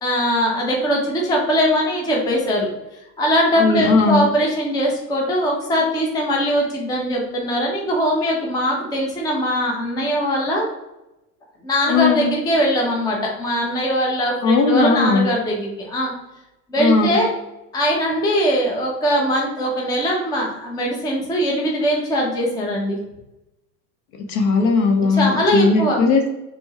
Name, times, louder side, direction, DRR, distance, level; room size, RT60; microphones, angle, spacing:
voice 1, 0.0-2.7 3.2-10.7 11.6-16.1 16.7-17.3 17.7-23.0 25.0-26.0, equal, 10° left, -1 dB, 0.5 m, -21 dB
voice 2, 3.6-4.2 11.9-12.3 14.4-15.3 16.8-17.2 24.3-26.3, left 4 dB, 45° left, 3 dB, 0.7 m, -17 dB
4.3 x 2.1 x 2.9 m, 0.93 s
figure-of-eight pair, 80°, 50 cm